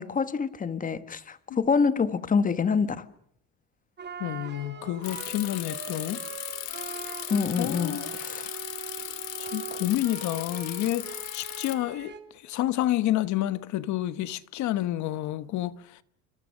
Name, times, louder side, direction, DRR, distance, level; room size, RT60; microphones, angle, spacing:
voice 1, 0.0-3.0 7.3-8.5, left 5 dB, 25° left, 1.4 m, -26 dB
sound 1, 4.0-12.2, right 7 dB, 30° right, 3.2 m, -41 dB
voice 2, 4.2-6.2 7.6-8.1 8.3-8.5 9.4-16.0, left 14 dB, 55° left, 1.2 m, -29 dB
Bicycle, 5.0-11.7, left 17 dB, 85° left, 2.7 m, -37 dB
29.5 x 25.0 x 6.5 m
cardioid pair, 125°, 33 cm